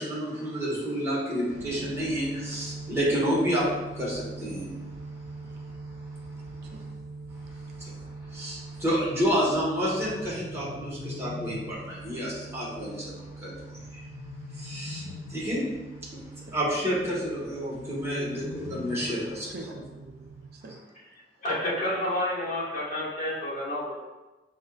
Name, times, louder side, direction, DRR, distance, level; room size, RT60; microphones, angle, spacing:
voice 1, 0.0-3.7 3.9-4.7 7.8-7.9 8.3-14.0 14.6-15.0 15.3-15.6 16.1-16.2 16.5-19.5, equal, 15° right, -7 dB, 1.4 m, -29 dB
sound 1, 1.5-20.5, right 3 dB, 80° right, 1.4 m, -43 dB
voice 2, 6.6-6.9 15.1-15.3 16.5-16.6 19.4-20.8, right 2 dB, 60° right, 1 dB, 0.5 m, -45 dB
sound 2, 10.1-12.1 13.8-15.7 17.5-19.4, left 4 dB, 75° left, 0.3 m, -42 dB
voice 3, 21.4-24.0, left 1 dB, 45° left, -7 dB, 1.4 m, -29 dB
7.2 x 2.7 x 2.3 m, 1.1 s
head